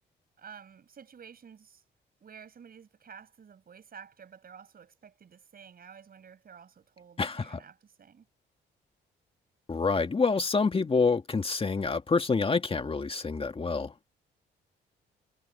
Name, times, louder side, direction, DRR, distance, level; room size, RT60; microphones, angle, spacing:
voice 1, 0.4-1.8 2.2-8.3, right 7 dB, 50° right, 6.9 m, -51 dB
voice 2, 7.2-7.6 9.7-13.9, left 4 dB, 30° left, 2.0 m, -27 dB
cardioid pair, 90°, 20 cm